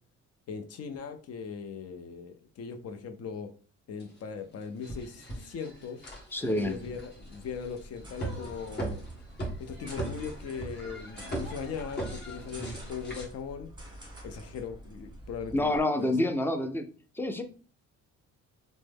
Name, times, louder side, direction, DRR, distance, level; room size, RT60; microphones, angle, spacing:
voice 1, 0.5-3.5 3.9-6.0 6.5-9.0 9.6-13.7 14.2-16.3, left 6 dB, 55° left, 7 dB, 0.6 m, -39 dB
sound 1, 4.0-4.1 4.6-13.2, right 1 dB, 35° left, 1.4 m, -39 dB
voice 2, 6.3-6.8 15.5-16.8 17.2-17.4, left 1 dB, 5° left, 7 dB, 0.4 m, -27 dB
sound 2, 6.5-15.8, right 1 dB, 15° right, 1.1 m, -48 dB
3.1 x 2.1 x 3.4 m, 0.39 s
cardioid pair, 90°, 30 cm